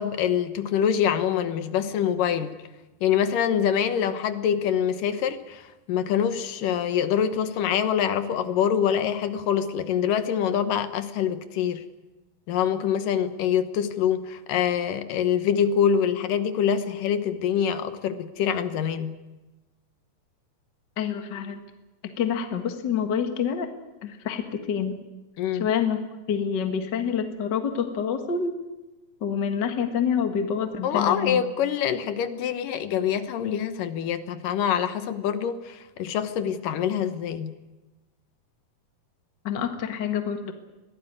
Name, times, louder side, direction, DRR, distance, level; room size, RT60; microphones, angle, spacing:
voice 1, 0.0-2.6 3.0-11.8 12.5-19.2 25.4-25.7 30.8-37.5, left 8 dB, 70° left, 10 dB, 2.6 m, -25 dB
voice 2, 21.0-21.6 22.0-23.7 24.0-25.0 25.6-26.0 26.3-28.5 29.2-31.4 39.4-40.5, left 7 dB, 45° left, 6 dB, 1.5 m, -27 dB
23.0 x 17.0 x 9.6 m, 1.1 s
omnidirectional pair, 4.2 m